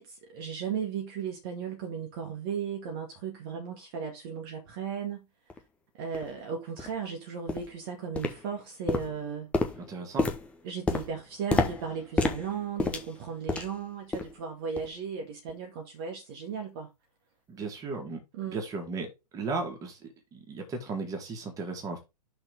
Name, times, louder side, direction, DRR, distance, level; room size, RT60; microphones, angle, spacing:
voice 1, 0.0-5.3 6.0-9.5 10.6-16.9 18.3-18.6, right 6 dB, 35° right, 1.6 m, -36 dB
sound 1, 5.5-5.6 6.1-6.3 6.8-7.0 7.5-7.8 8.2-8.6 8.9-13.8 14.1-14.4 14.8-14.9 15.5-15.6, left 3 dB, 5° left, 0.8 m, -31 dB
voice 2, 9.8-10.3 17.5-18.2 18.5-19.1 19.3-22.0, right 3 dB, 15° right, 2.0 m, -35 dB
5.9 x 4.2 x 5.2 m
figure-of-eight pair, 115°, 21 cm